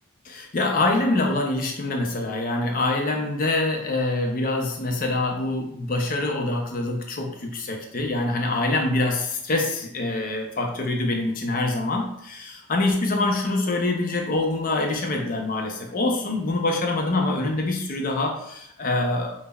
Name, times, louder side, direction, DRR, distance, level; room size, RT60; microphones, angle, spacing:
voice 1, 0.3-19.3, left 2 dB, 40° left, 2 dB, 0.4 m, -25 dB
5.2 x 2.1 x 2.2 m, 0.75 s
head